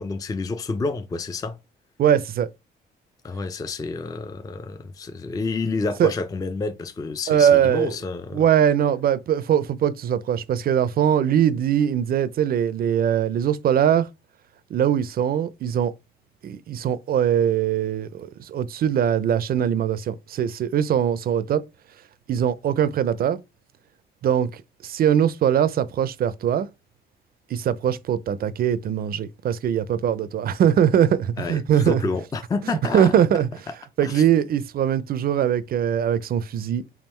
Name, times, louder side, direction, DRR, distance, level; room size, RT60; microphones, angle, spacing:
voice 1, 0.0-1.6 3.2-8.4 31.4-33.2 34.0-34.2, left 4 dB, 20° left, 0.4 m, -29 dB
voice 2, 2.0-2.5 6.0-6.1 7.3-7.9 8.3-14.1 14.7-15.9 16.4-21.6 22.3-23.4 24.2-26.7 27.5-32.0 32.9-33.5 34.0-36.8, right 9 dB, 50° right, 0.4 m, -21 dB
3.6 x 2.3 x 4.3 m
cardioid pair, 90°, 20 cm